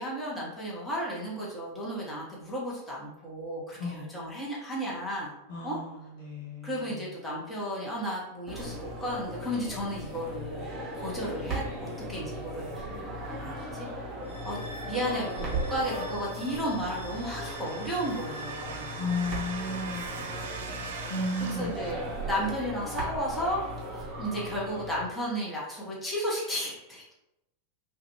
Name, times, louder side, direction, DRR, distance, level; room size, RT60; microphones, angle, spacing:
voice 1, 0.0-5.3 5.6-5.8 6.6-13.0 13.4-13.9 14.4-14.6 14.8-18.9 21.4-23.6 23.9-27.1, equal, 10° left, -6 dB, 0.9 m, -34 dB
voice 2, 5.5-6.9 19.0-20.4 21.1-22.0, left 2 dB, 55° left, -4 dB, 0.6 m, -34 dB
sound 1, 8.5-25.0, right 1 dB, 25° right, 0.9 m, -37 dB
sound 2, 14.2-21.4, right 1 dB, 85° left, 0.9 m, -46 dB
sound 3, 15.5-21.9, right 5 dB, 60° right, 0.3 m, -42 dB
2.4 x 2.3 x 2.9 m, 0.91 s
figure-of-eight pair, 90°, 0 cm